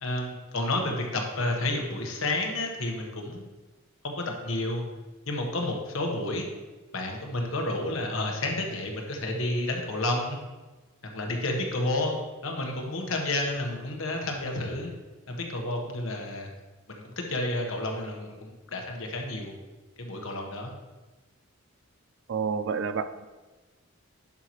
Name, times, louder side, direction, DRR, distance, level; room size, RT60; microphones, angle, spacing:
voice 1, 0.0-3.5 4.0-4.8 5.3-6.5 6.9-10.4 11.0-12.2 12.4-14.9 15.3-16.5 16.9-19.5 20.0-20.7, left 2 dB, 70° left, 1 dB, 1.3 m, -30 dB
voice 2, 22.3-23.3, right 6 dB, 55° right, 12 dB, 0.4 m, -29 dB
11.0 x 5.7 x 3.2 m, 1.2 s
head